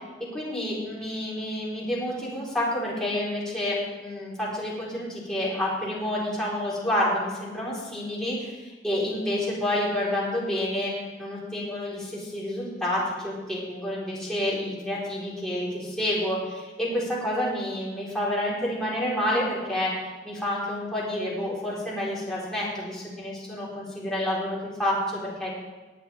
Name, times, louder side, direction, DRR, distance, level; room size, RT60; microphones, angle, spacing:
voice 1, 0.3-10.9 11.2-19.9 20.2-25.5, left 1 dB, 5° left, -7 dB, 3.9 m, -29 dB
20.0 x 8.9 x 3.5 m, 1.2 s
head